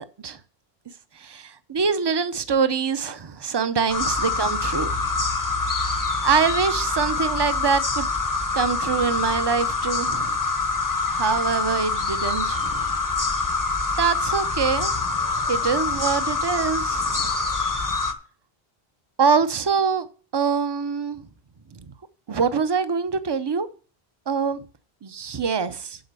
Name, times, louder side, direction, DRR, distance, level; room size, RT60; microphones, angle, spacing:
voice 1, 1.2-4.9 5.8-5.9 6.2-8.1 8.5-10.4 11.0-12.9 14.0-15.2 15.5-17.3 19.2-20.1 20.3-21.2 22.3-23.7 24.3-24.6 25.0-26.0, right 5 dB, 30° right, 12 dB, 0.5 m, -24 dB
sound 1, 3.9-18.1, left 3 dB, 20° left, 0.6 m, -25 dB
7.9 x 5.9 x 6.7 m, 0.40 s
omnidirectional pair, 1.1 m